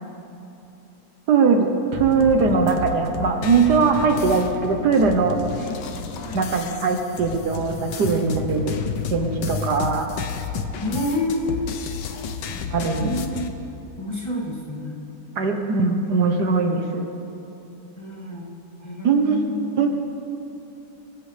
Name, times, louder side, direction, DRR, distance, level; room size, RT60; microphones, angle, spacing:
voice 1, 1.3-5.4 6.3-8.8 9.1-10.1 12.7-13.1 15.4-17.1 19.0-19.4 19.8-19.9, right 5 dB, 70° right, 4 dB, 1.6 m, -20 dB
sound 1, 1.9-13.5, left 6 dB, 85° left, 1.5 m, -31 dB
voice 2, 5.6-5.9 6.2-6.5 10.8-11.7 12.9-13.5 14.0-15.0 18.0-19.9, left 2 dB, 15° left, -6 dB, 2.4 m, -29 dB
25.0 x 14.5 x 3.4 m, 2.8 s
omnidirectional pair, 1.9 m